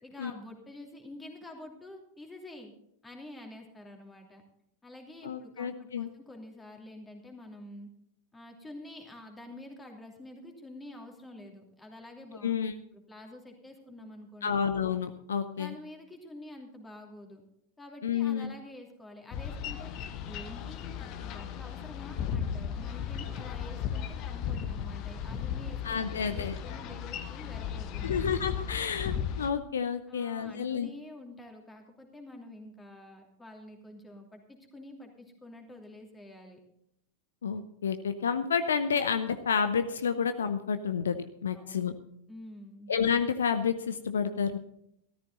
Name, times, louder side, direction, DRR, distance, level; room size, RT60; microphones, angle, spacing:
voice 1, 0.0-2.7 3.0-4.4 4.8-7.9 8.3-12.5 12.9-14.6 15.6-17.4 17.8-19.9 20.2-28.3 30.1-36.6 41.5-41.8 42.3-42.9, left 1 dB, 10° left, 3 dB, 2.8 m, -48 dB
voice 2, 5.2-6.1 12.4-12.7 14.4-15.7 18.0-18.5 25.8-26.6 28.0-30.9 37.4-41.2 41.4-41.9 42.9-44.6, left 7 dB, 65° left, 10 dB, 0.7 m, -30 dB
Boat Water vehicle, 19.3-29.5, left 8 dB, 40° left, 1.1 m, -36 dB
14.0 x 13.5 x 3.9 m, 0.77 s
figure-of-eight pair, 90°, 0 cm